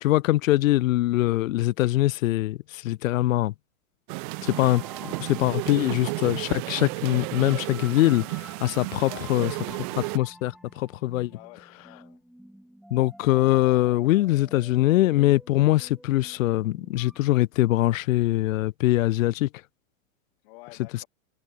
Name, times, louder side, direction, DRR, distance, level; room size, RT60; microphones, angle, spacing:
voice 1, 0.0-3.5 4.4-9.5 10.0-11.3 12.9-19.5 20.9-21.0, left 16 dB, 75° left, 0.6 m, -23 dB
sound 1, 4.1-10.2, right 29 dB, 35° right, 1.3 m, -33 dB
sound 2, 4.4-17.2, equal, ahead, 5.8 m, -49 dB
voice 2, 9.0-9.3 11.3-12.2 20.4-21.1, left 27 dB, 40° left, 6.7 m, -48 dB
supercardioid pair, 155°, 41 cm